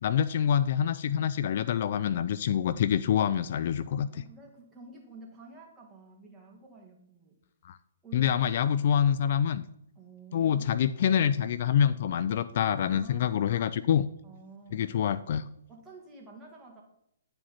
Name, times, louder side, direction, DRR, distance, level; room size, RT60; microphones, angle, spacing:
voice 1, 0.0-4.1 7.6-7.8 8.1-9.6 10.3-14.1 14.7-15.5, left 9 dB, 55° left, 15 dB, 0.3 m, -26 dB
voice 2, 4.1-7.4 8.0-8.4 8.7-8.8 10.0-10.8 12.7-13.6 14.2-14.9 15.7-16.8, right 2 dB, 15° right, -1 dB, 2.0 m, -50 dB
10.0 x 4.9 x 4.3 m, 0.77 s
hypercardioid pair, 130°, 0 cm